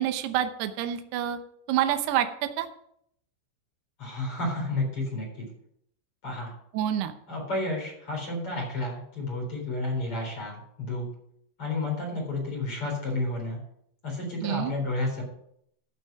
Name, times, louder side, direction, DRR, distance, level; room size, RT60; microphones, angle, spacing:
voice 1, 0.0-1.4 1.7-2.3 2.6-2.7 6.7-7.1 14.4-14.7, right 11 dB, 80° right, 8 dB, 2.4 m, -27 dB
voice 2, 4.0-5.4 6.2-6.5 7.3-11.1 11.6-13.6 14.0-15.2, left 2 dB, 30° left, -1 dB, 4.4 m, -31 dB
14.0 x 6.4 x 5.9 m, 0.71 s
omnidirectional pair, 5.7 m